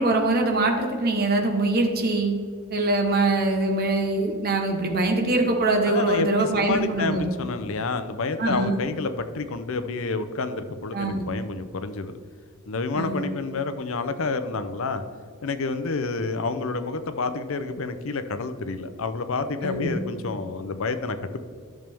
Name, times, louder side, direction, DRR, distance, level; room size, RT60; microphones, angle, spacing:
voice 1, 0.0-2.3 2.7-7.3 8.4-8.7 10.9-11.2 13.0-13.2 19.6-19.9, right 2 dB, 45° right, 2 dB, 1.1 m, -23 dB
voice 2, 5.9-12.1 12.7-15.0 15.4-21.4, left 3 dB, 60° left, 10 dB, 0.6 m, -29 dB
10.5 x 6.8 x 3.5 m, 2.1 s
head